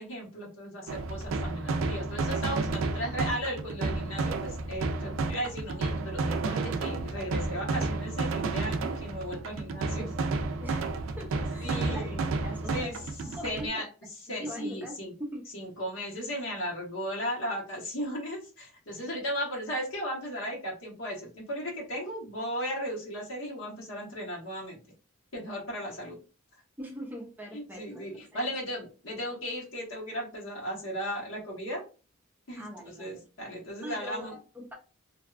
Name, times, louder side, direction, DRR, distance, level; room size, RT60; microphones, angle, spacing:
voice 1, 0.0-10.1 11.6-12.2 12.7-13.0 13.4-13.8 14.3-15.1 15.5-24.8 25.3-26.2 27.5-31.8 32.5-32.7 33.0-34.4, equal, 75° left, -3 dB, 1.2 m, -36 dB
sound 1, 0.9-13.7, right 3 dB, 70° right, 0.3 m, -31 dB
voice 2, 11.2-12.1 12.4-13.8 14.3-15.4 26.8-28.4 32.6-33.2 33.8-34.7, equal, 10° right, -1 dB, 0.4 m, -41 dB
2.6 x 2.2 x 2.4 m, 0.35 s
head